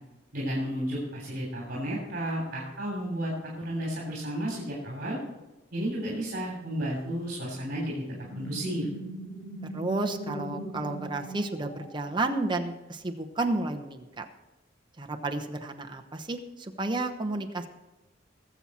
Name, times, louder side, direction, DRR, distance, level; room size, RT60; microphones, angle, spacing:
voice 1, 0.3-3.3 3.6-5.2 5.7-8.0 8.3-8.9, equal, 50° right, -3 dB, 3.2 m, -32 dB
sound 1, 8.3-12.5, right 1 dB, 40° left, 4.5 m, -40 dB
voice 2, 9.7-14.2 15.0-17.7, right 2 dB, 25° right, 4 dB, 0.9 m, -31 dB
20.0 x 7.4 x 4.3 m, 1.1 s
head